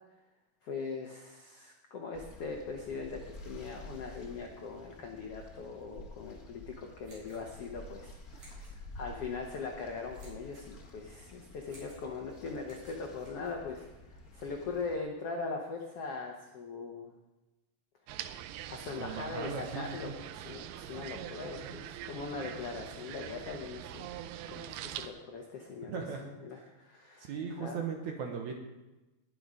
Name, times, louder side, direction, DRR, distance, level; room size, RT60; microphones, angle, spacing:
voice 1, 0.6-17.1 18.7-24.1 24.5-26.0 26.4-27.3 27.6-27.9, left 4 dB, 75° left, 2 dB, 1.3 m, -41 dB
sound 1, 2.1-15.0, left 1 dB, 45° left, 1.2 m, -50 dB
sound 2, 6.9-14.2, right 2 dB, 50° right, 5.8 m, -61 dB
sound 3, 18.1-25.1, right 11 dB, 85° right, 2.6 m, -44 dB
voice 2, 19.0-20.2 24.5-24.6 25.9-26.7 27.2-28.5, right 6 dB, 65° right, 3 dB, 2.1 m, -39 dB
20.5 x 7.0 x 5.1 m, 1.0 s
omnidirectional pair, 4.5 m